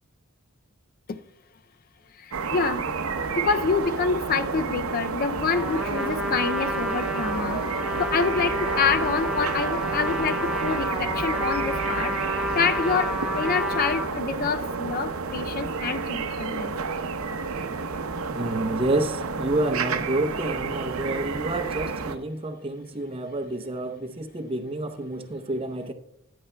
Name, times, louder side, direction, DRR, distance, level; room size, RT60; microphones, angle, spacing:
voice 1, 2.2-2.8 3.3-7.6 8.0-12.2 12.5-16.7, left 5 dB, 45° left, 0.4 m, -27 dB
sound 1, 2.3-22.2, right 4 dB, 85° right, 0.7 m, -30 dB
Trumpet, 5.5-14.1, equal, 5° right, 1.0 m, -30 dB
voice 2, 18.3-25.9, right 2 dB, 25° right, 0.7 m, -29 dB
14.5 x 9.5 x 2.2 m
head